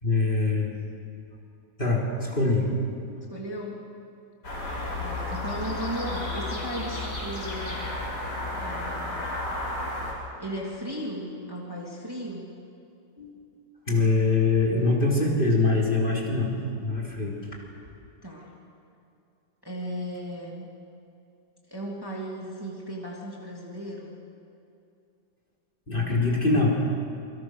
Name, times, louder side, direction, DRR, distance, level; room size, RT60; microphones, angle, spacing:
voice 1, 0.0-0.7 1.8-2.7 13.2-13.3 13.9-16.5 16.8-17.4 25.9-26.7, left 3 dB, 25° left, -3 dB, 4.1 m, -23 dB
voice 2, 3.3-3.9 5.0-7.8 8.6-9.2 10.4-12.5 18.2-18.5 19.6-20.6 21.7-24.1, equal, 10° right, -3 dB, 3.0 m, -36 dB
sound 1, 4.4-10.1, left 2 dB, 65° left, 6.9 m, -32 dB
28.0 x 23.5 x 6.5 m, 2.7 s
omnidirectional pair, 2.0 m